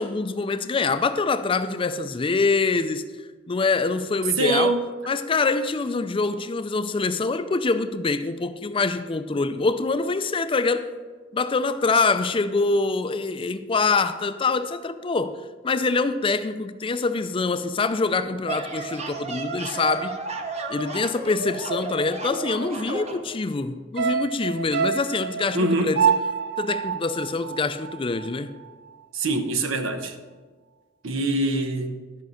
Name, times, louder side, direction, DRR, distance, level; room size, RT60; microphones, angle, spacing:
voice 1, 0.0-3.0 3.5-4.7 5.1-10.9 11.3-20.2 20.7-26.0 26.6-28.5, left 3 dB, 25° left, 0.4 m, -25 dB
voice 2, 4.4-4.9 25.5-26.0 29.1-30.1 31.0-32.0, right 2 dB, 90° right, 1.0 m, -24 dB
sound 1, 18.2-23.2, right 3 dB, 35° right, 0.8 m, -33 dB
sound 2, 24.0-28.4 28.7-28.8, right 7 dB, 60° right, 0.3 m, -27 dB
12.5 x 5.4 x 6.3 m
head